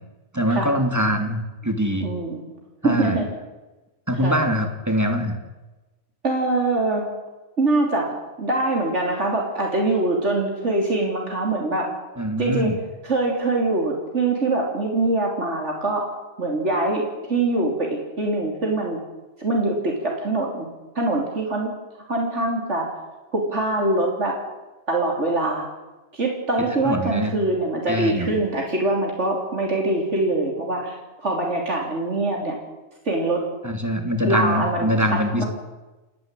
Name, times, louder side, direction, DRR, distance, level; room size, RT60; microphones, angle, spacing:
voice 1, 0.3-2.1 2.8-3.2 4.1-5.4 12.2-12.8 26.8-27.3 27.9-28.3 33.6-35.4, equal, 15° right, 5 dB, 2.7 m, -23 dB
voice 2, 2.0-2.4 2.8-3.3 4.2-4.4 6.2-7.1 7.6-11.9 12.4-12.7 13.0-16.1 16.4-17.0 17.3-19.0 19.4-20.7 21.0-21.7 22.1-22.9 23.3-24.4 24.9-25.7 26.1-32.6 33.1-33.4 34.2-35.5, right 2 dB, 85° right, 0 dB, 3.8 m, -23 dB
29.0 x 11.5 x 9.1 m, 1.1 s
omnidirectional pair, 1.2 m